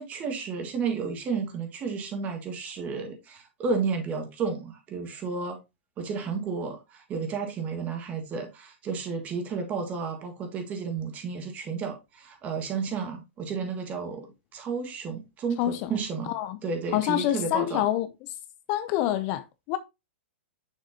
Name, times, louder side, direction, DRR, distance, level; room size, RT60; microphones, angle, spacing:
voice 1, 0.0-5.6 6.0-16.3 16.6-17.8, right 5 dB, 25° right, 1.7 m, -32 dB
voice 2, 15.6-15.9 16.3-16.6 16.9-18.1 18.7-19.8, left 13 dB, 35° left, 0.5 m, -26 dB
6.6 x 6.2 x 2.8 m
hypercardioid pair, 145°, 6 cm